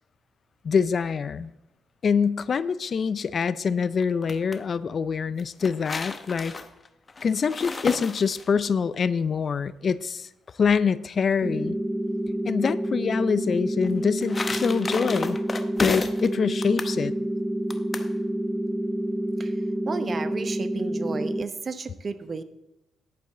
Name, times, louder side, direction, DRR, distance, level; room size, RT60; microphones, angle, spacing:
voice 1, 0.6-1.5 2.0-6.5 7.2-10.3 10.6-11.8 12.4-15.4 15.8-17.1, left 6 dB, 45° left, 16 dB, 0.5 m, -25 dB
sound 1, 4.0-4.6 5.4-8.7 13.8-16.3 16.6-17.0 17.7-18.1, left 3 dB, 30° left, 0.8 m, -33 dB
sound 2, 11.4-21.4, right 1 dB, 10° right, 0.4 m, -28 dB
voice 2, 19.4-22.4, right 4 dB, 40° right, 11 dB, 0.8 m, -33 dB
10.5 x 8.6 x 3.8 m, 0.92 s
cardioid pair, 90°, 0 cm